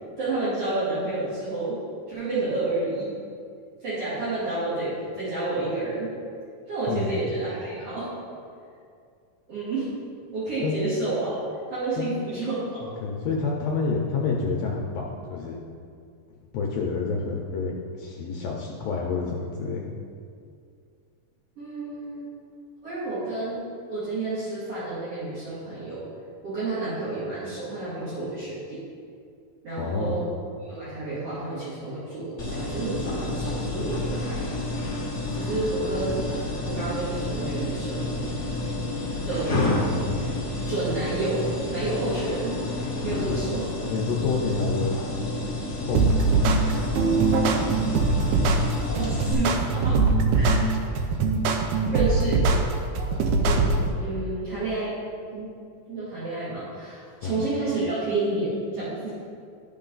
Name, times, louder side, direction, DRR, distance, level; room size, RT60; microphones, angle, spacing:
voice 1, 0.2-1.8 2.1-3.1 3.8-6.1 6.7-8.1 9.5-9.9 10.3-11.4 11.7-12.8 21.6-22.3 22.8-23.6 23.9-26.0 26.4-28.8 29.6-30.3 30.6-34.6 35.3-36.1 36.6-38.3 39.2-39.7 40.1-40.3 40.6-42.6 43.0-43.7 47.6-47.8 48.8-50.0 50.3-50.6 51.9-52.4 53.4-53.6 54.0-54.9 55.3-55.5 55.9-59.1, right 2 dB, 50° right, -12 dB, 3.2 m, -30 dB
voice 2, 12.8-15.6 16.5-19.8 29.8-30.2 35.4-35.5 43.2-43.4 43.8-45.2 45.7-46.4 48.2-48.4 50.6-50.7 52.2-52.3 57.2-57.4, left 4 dB, 75° left, -1 dB, 1.5 m, -29 dB
sound 1, 32.4-49.3, left 2 dB, 55° left, 0.8 m, -30 dB
sound 2, 46.0-53.9, right 3 dB, 75° right, 2.0 m, -22 dB
13.5 x 4.4 x 3.9 m, 2.3 s
omnidirectional pair, 3.7 m